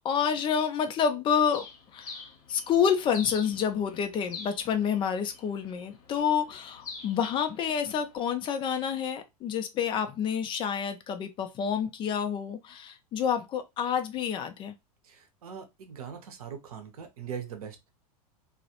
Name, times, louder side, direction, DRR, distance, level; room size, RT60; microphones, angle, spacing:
voice 1, 0.0-1.7 1.9-14.8, left 7 dB, 25° left, 0.4 m, -28 dB
Bird, 1.5-8.2, left 4 dB, 65° left, 0.8 m, -46 dB
voice 2, 15.0-17.8, right 7 dB, 65° right, 0.7 m, -41 dB
2.3 x 2.0 x 2.7 m
figure-of-eight pair, 90°, 20 cm